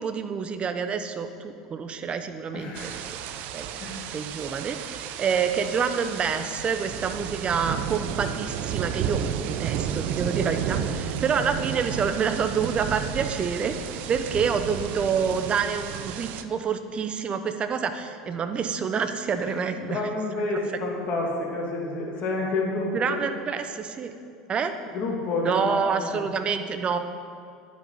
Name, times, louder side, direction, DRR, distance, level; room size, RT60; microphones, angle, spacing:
voice 1, 0.0-3.0 3.5-3.7 4.1-13.8 14.1-20.0 22.9-24.1 24.5-24.7 25.4-27.0, right 6 dB, 35° right, 8 dB, 1.0 m, -27 dB
voice 2, 2.5-3.0 3.8-4.0 19.3-19.4 19.7-23.2 24.9-26.3, left 2 dB, 40° left, -2 dB, 2.7 m, -29 dB
sound 1, 2.7-16.4, right 9 dB, 55° right, 0.7 m, -32 dB
10.5 x 9.2 x 5.8 m, 2.4 s
hypercardioid pair, 80°, 3 cm